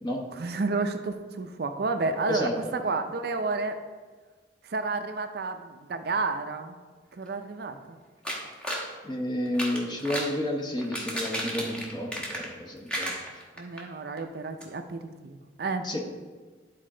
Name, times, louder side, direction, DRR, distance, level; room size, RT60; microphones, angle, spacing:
voice 1, 0.3-3.8 4.6-6.7 7.1-8.0 13.6-15.9, right 3 dB, 60° right, 7 dB, 0.5 m, -31 dB
sound 1, 8.3-8.9 9.5-10.4 10.8-12.6 12.9-13.8 14.2-14.3 14.6-14.7, equal, 5° left, 1.1 m, -33 dB
voice 2, 9.0-13.1 15.8-16.0, left 1 dB, 25° left, 0 dB, 1.0 m, -31 dB
11.0 x 4.2 x 3.7 m, 1.4 s
head